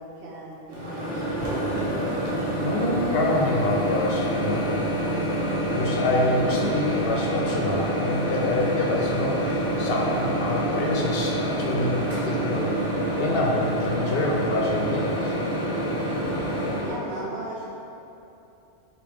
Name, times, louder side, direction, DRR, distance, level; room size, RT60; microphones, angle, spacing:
voice 1, 0.0-1.6 16.8-17.6, right 2 dB, 75° right, -5 dB, 1.2 m, -37 dB
Microwave oven, 0.7-17.0, right 1 dB, 25° right, 1.0 m, -27 dB
voice 2, 2.3-4.7 5.7-12.9 13.1-15.3, left 2 dB, 65° left, -1 dB, 0.7 m, -26 dB
5.0 x 2.8 x 3.4 m, 2.8 s
omnidirectional pair, 1.1 m